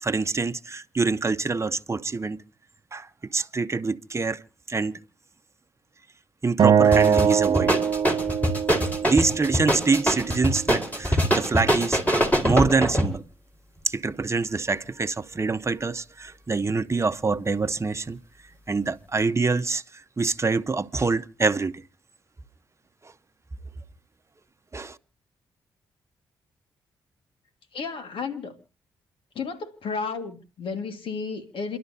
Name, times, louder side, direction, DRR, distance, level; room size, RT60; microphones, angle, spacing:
voice 1, 0.0-2.4 2.9-3.1 3.3-4.4 4.7-5.0 6.4-7.7 9.0-12.0 12.4-13.2 13.9-18.2 18.7-19.8 20.2-21.7 24.7-25.0, right 4 dB, 30° right, 0.9 m, -25 dB
Acoustic guitar, 6.6-9.8, right 8 dB, 60° right, 0.8 m, -22 dB
sound 1, 6.9-13.2, equal, 15° left, 4.4 m, -24 dB
voice 2, 27.7-28.6 29.4-31.8, left 5 dB, 70° left, 2.0 m, -32 dB
28.5 x 12.0 x 2.8 m
supercardioid pair, 45°, 9 cm